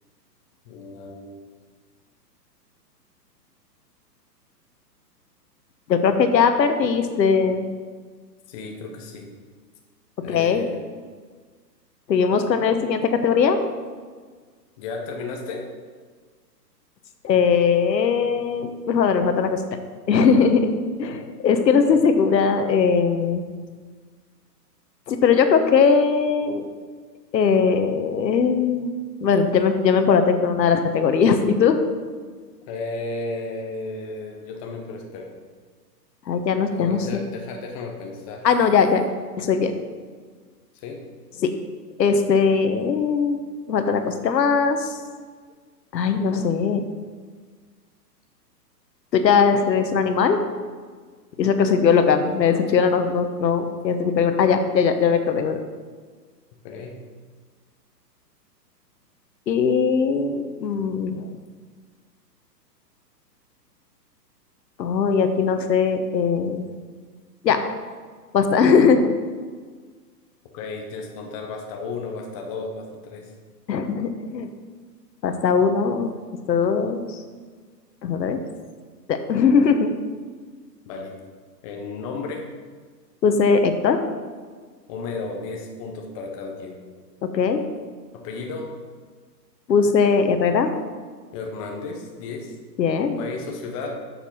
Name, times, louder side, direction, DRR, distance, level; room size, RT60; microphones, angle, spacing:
voice 1, 0.7-1.4 8.5-9.3 10.2-10.8 14.8-15.7 32.7-35.3 36.8-38.5 40.7-41.0 56.6-57.0 70.5-73.3 80.8-81.1 81.6-82.5 84.9-86.8 88.1-88.7 91.3-92.5 93.2-94.0, left 3 dB, 20° left, 2 dB, 0.8 m, -33 dB
voice 2, 5.9-7.6 10.2-10.6 12.1-13.6 17.2-19.6 20.1-20.7 21.0-23.4 25.1-26.6 27.3-28.9 29.2-31.8 36.3-37.0 38.4-39.0 39.4-39.7 41.4-41.5 42.0-44.9 45.9-46.8 49.1-50.4 51.4-55.6 59.5-61.3 64.8-66.6 67.4-67.6 68.3-69.1 73.7-74.5 75.2-76.1 76.5-77.2 78.0-78.4 79.1-79.9 83.2-84.0 87.3-87.6 89.7-90.7 92.8-93.2, left 6 dB, 80° left, 8 dB, 1.2 m, -20 dB
7.2 x 7.1 x 5.6 m, 1.5 s
hypercardioid pair, 150°, 50 cm